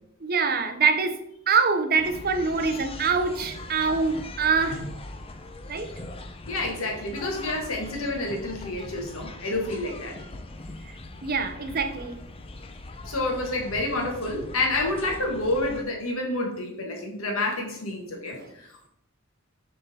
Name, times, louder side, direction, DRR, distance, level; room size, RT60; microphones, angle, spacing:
voice 1, 0.2-1.2 1.5-4.8 5.7-5.9 10.8-10.9 11.2-12.2, right 5 dB, 45° right, 7 dB, 0.7 m, -24 dB
sound 1, 2.0-15.8, left 2 dB, 25° left, 0.5 m, -41 dB
voice 2, 6.5-10.2 13.0-18.9, left 2 dB, 85° left, 1 dB, 1.6 m, -29 dB
6.7 x 3.8 x 4.2 m, 0.74 s
head